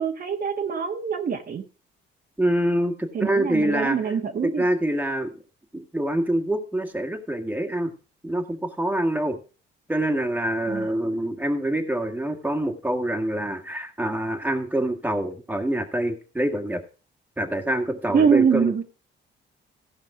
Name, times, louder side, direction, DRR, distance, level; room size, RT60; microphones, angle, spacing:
voice 1, 0.0-1.6 3.1-4.6 10.7-10.9 18.1-18.8, right 6 dB, 50° right, 4 dB, 1.4 m, -24 dB
voice 2, 2.4-4.1 4.4-5.3 5.7-7.9 8.2-9.4 9.9-16.8 17.4-18.8, right 1 dB, 10° right, 4 dB, 1.7 m, -26 dB
15.5 x 5.2 x 4.9 m, 0.35 s
cardioid pair, 90°, 20 cm